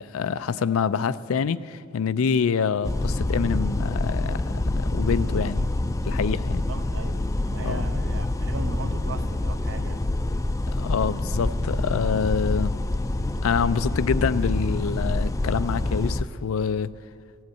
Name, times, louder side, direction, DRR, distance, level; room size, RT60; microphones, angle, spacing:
voice 1, 0.0-5.7 6.0-6.6 7.6-7.8 10.8-12.8 13.4-16.9, left 6 dB, 85° left, 0.4 m, -26 dB
sound 1, 2.8-16.2, left 2 dB, 15° left, 0.3 m, -26 dB
voice 2, 6.5-10.2, right 3 dB, 65° right, 0.7 m, -38 dB
15.5 x 7.9 x 8.3 m
head